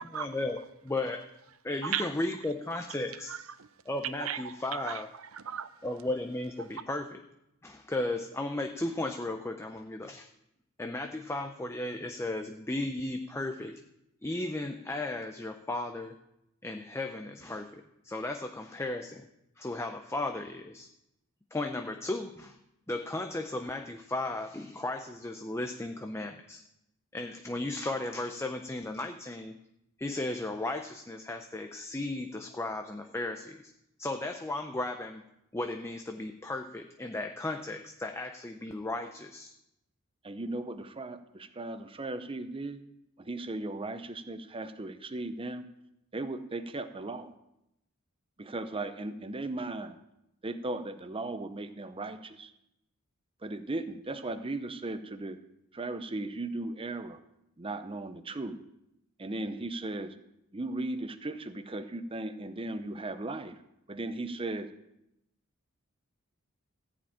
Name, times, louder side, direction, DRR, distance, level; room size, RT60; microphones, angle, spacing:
voice 1, 0.0-1.3 1.6-3.4 3.9-5.1 5.8-7.2 7.6-10.3 10.8-13.8 14.2-16.1 16.6-19.3 19.6-20.9 21.5-22.6 22.9-26.6 27.1-29.6 30.0-33.7 34.0-35.2 35.5-39.5, left 2 dB, 10° left, 0.6 m, -35 dB
voice 2, 3.3-3.7 4.0-5.8 6.6-6.7, right 9 dB, 70° right, 0.7 m, -36 dB
voice 3, 40.2-42.8 43.2-45.7 46.1-47.3 48.4-50.0 50.4-52.5 53.4-55.4 55.7-57.2 57.6-58.6 59.2-60.1 60.5-63.6 63.9-64.7, right 2 dB, 25° right, 0.7 m, -37 dB
14.5 x 5.1 x 8.7 m
head